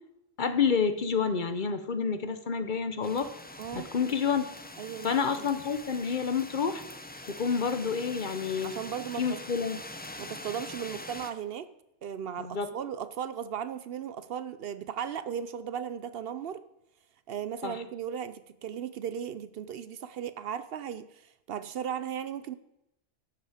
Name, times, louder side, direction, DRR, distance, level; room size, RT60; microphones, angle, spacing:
voice 1, 0.4-3.3 3.7-4.5 5.0-6.8 7.3-8.7 9.2-9.8 12.4-12.7 17.6-17.8, left 6 dB, 50° left, 10 dB, 0.9 m, -29 dB
sound 1, 3.0-11.3, left 1 dB, 10° left, 0.5 m, -44 dB
voice 2, 4.8-5.1 5.3-5.5 8.6-9.4 10.2-11.7 12.0-16.6 17.3-21.2 21.5-22.5, right 8 dB, 65° right, 13 dB, 0.8 m, -36 dB
12.0 x 8.3 x 4.9 m, 0.87 s
omnidirectional pair, 1.1 m